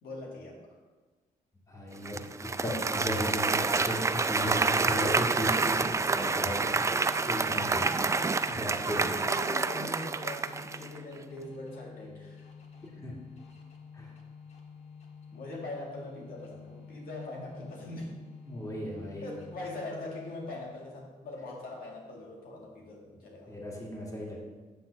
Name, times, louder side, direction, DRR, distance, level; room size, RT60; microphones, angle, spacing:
voice 1, 0.0-0.8 9.0-12.4 15.3-18.1 19.2-23.6, left 2 dB, 85° left, -2 dB, 2.0 m, -42 dB
voice 2, 1.7-2.2 2.6-4.0 4.3-6.9 7.2-8.0 8.5-9.2 12.8-13.2 13.9-14.1 18.5-19.4 23.5-24.4, left 1 dB, 20° left, -3 dB, 2.1 m, -35 dB
Applause, 2.1-11.0, right 4 dB, 20° right, 0.3 m, -28 dB
sound 1, 4.8-20.9, left 6 dB, 50° left, 1.5 m, -49 dB
9.0 x 3.8 x 7.0 m, 1.3 s
cardioid pair, 100°, 15 cm